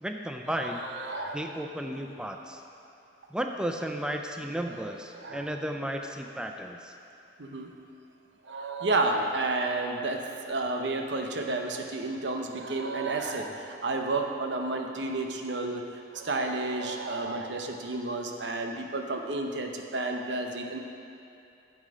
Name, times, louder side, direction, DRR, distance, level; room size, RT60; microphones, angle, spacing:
voice 1, 0.0-0.8 1.3-2.6 3.3-6.9, equal, 5° right, 4 dB, 0.4 m, -34 dB
voice 2, 0.6-1.4 5.1-5.5 7.4-7.7 8.4-15.8 16.1-20.8, right 2 dB, 80° right, 3 dB, 0.8 m, -31 dB
9.8 x 7.4 x 5.0 m, 2.6 s
head